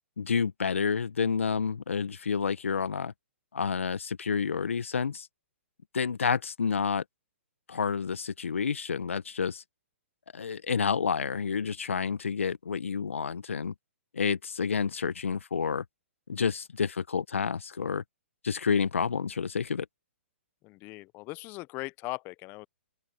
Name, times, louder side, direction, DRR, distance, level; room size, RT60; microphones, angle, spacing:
voice 1, 0.2-3.1 3.5-5.3 5.9-7.0 7.7-9.6 10.3-13.7 14.1-15.8 16.3-18.0 18.4-19.8, left 6 dB, 75° left, 1.7 m, -29 dB
voice 2, 20.6-22.7, left 22 dB, 30° left, 0.8 m, -39 dB
open air
figure-of-eight pair, 120°, 7 cm